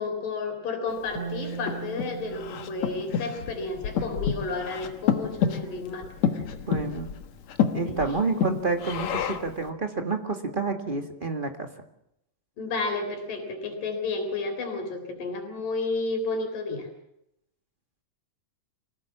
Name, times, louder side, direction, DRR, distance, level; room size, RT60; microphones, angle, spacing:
voice 1, 0.0-6.1 6.4-6.5 7.9-8.0 8.3-8.5 12.6-16.9, left 3 dB, 80° left, 4 dB, 5.3 m, -32 dB
Breathing, 1.1-9.6, left 7 dB, 60° left, 2.6 m, -29 dB
sound 1, 1.2-4.5, right 6 dB, 55° right, 4.0 m, -40 dB
voice 2, 6.7-7.1 7.7-11.7, right 3 dB, 25° right, 5 dB, 1.0 m, -29 dB
25.0 x 17.5 x 7.4 m, 0.81 s
omnidirectional pair, 3.8 m